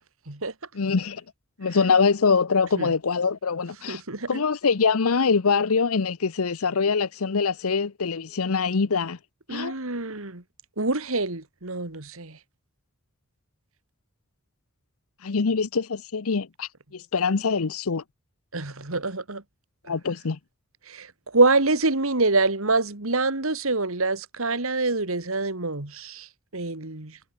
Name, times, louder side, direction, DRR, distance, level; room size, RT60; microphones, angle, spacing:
voice 1, 0.7-1.2 1.6-4.0 4.3-9.2 9.5-9.7 15.2-18.0 19.9-20.4, left 5 dB, 75° left, 0.8 m, -24 dB
voice 2, 3.9-4.4 9.5-10.4 10.8-12.4 18.5-19.4 20.9-21.1 21.3-26.3 26.5-27.1, right 3 dB, 65° right, 2.5 m, -25 dB
head